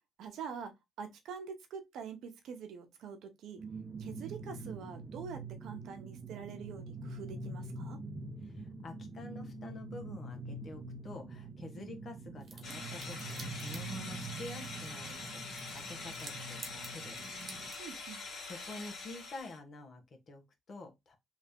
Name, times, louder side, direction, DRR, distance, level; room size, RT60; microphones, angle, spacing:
voice 1, 0.2-3.6 4.0-8.0 11.8-11.9 17.8-18.2, right 6 dB, 80° right, 0.8 m, -45 dB
sound 1, 3.6-17.7, right 3 dB, 30° right, 0.8 m, -45 dB
voice 2, 8.4-17.3 18.4-21.2, left 2 dB, 50° left, 1.1 m, -48 dB
sound 2, 12.4-17.9, right 4 dB, 50° right, 1.2 m, -53 dB
sound 3, 12.6-19.6, left 3 dB, 75° left, 1.8 m, -44 dB
3.3 x 2.8 x 3.5 m
cardioid pair, 90°, 0 cm